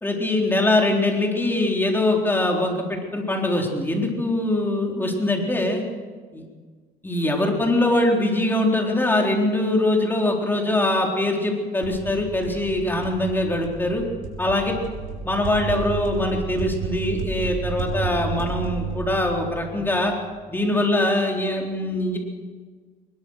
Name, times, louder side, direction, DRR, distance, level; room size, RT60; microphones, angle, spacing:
voice 1, 0.0-5.8 6.3-6.4 7.0-14.0 14.4-14.7 15.2-20.1 20.5-22.2, left 1 dB, 10° left, 0 dB, 4.1 m, -22 dB
sound 1, 11.8-20.5, right 5 dB, 75° right, 5.0 m, -32 dB
22.5 x 21.0 x 6.6 m, 1.5 s
cardioid pair, 110°, 17 cm